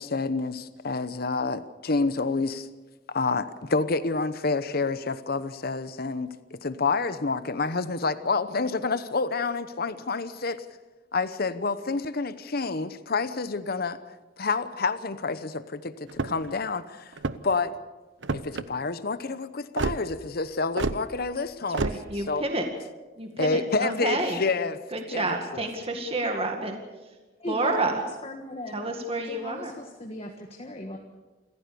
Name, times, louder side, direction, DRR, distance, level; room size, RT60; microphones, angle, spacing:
voice 1, 0.0-2.7 3.1-10.6 11.1-14.0 14.4-17.1 17.4-17.7 18.3-22.5 23.4-24.8 25.1-25.3 25.5-25.6, left 4 dB, 55° left, 13 dB, 0.9 m, -28 dB
sound 1, 16.1-16.5 17.1-17.6 18.2-18.7 19.8-20.0 20.8-21.0 21.7-22.0, right 3 dB, 80° right, 0.9 m, -28 dB
voice 2, 21.8-22.7 23.2-24.4 24.9-26.8 27.5-28.0 28.7-29.7, right 2 dB, 35° right, 3 dB, 2.1 m, -29 dB
voice 3, 27.4-28.8 29.2-31.0, left 2 dB, 35° left, 3 dB, 1.6 m, -37 dB
28.0 x 15.0 x 7.0 m, 1.2 s
head